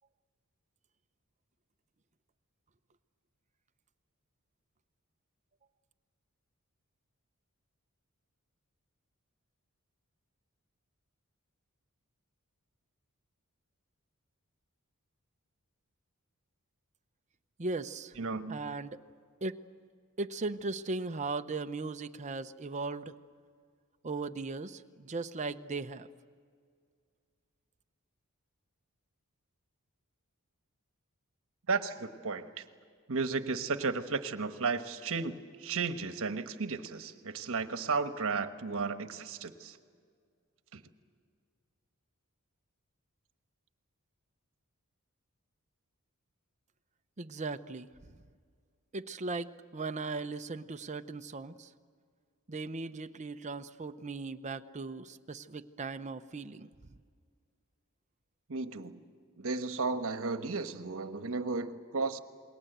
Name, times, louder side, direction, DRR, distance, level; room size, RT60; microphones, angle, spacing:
voice 1, 17.6-18.2 18.5-19.0 19.4-19.6 20.2-23.2 24.0-26.1 47.2-47.9 48.9-51.7 52.5-56.7, right 3 dB, 35° right, 9 dB, 0.7 m, -38 dB
voice 2, 18.2-18.6 31.7-32.5 33.1-39.8 40.7-40.8 58.5-59.0 59.4-62.2, right 4 dB, 65° right, 9 dB, 1.3 m, -34 dB
28.5 x 21.0 x 8.0 m, 2.1 s
head